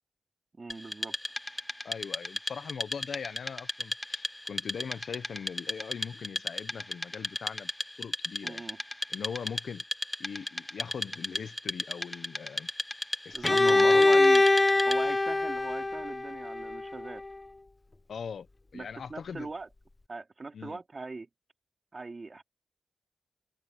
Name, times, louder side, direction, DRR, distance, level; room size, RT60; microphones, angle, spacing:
voice 1, 0.6-1.2 8.4-8.8 13.3-14.4 14.9-17.2 18.7-19.7 20.1-21.3 21.9-22.4, right 3 dB, 40° right, 3.0 m, -40 dB
Wood, 0.7-15.2, left 1 dB, 10° left, 1.0 m, -36 dB
voice 2, 1.8-7.7 8.0-8.6 9.1-9.8 10.2-12.7 13.2-14.2 18.1-18.5 18.7-19.5 20.5-20.8, left 6 dB, 75° left, 1.0 m, -40 dB
Bowed string instrument, 13.4-17.3, left 2 dB, 25° left, 0.4 m, -23 dB
cardioid pair, 80°, 0 cm